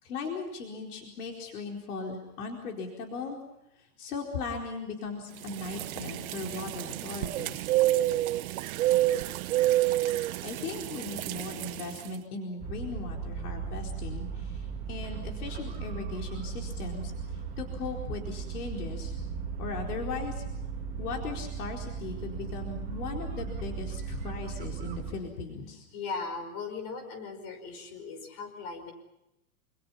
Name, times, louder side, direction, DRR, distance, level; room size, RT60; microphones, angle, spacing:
voice 1, 0.0-3.4 3.8-7.7 10.4-19.2 19.6-20.4 21.0-25.8, left 4 dB, 75° left, 1 dB, 4.5 m, -38 dB
sound 1, 5.4-12.1, right 15 dB, 65° right, 1.0 m, -29 dB
sound 2, 12.6-25.1, right 6 dB, 20° right, 2.3 m, -37 dB
voice 2, 25.9-28.9, left 4 dB, 35° left, 7 dB, 5.4 m, -38 dB
27.5 x 27.0 x 5.7 m, 0.87 s
supercardioid pair, 170°, 45 cm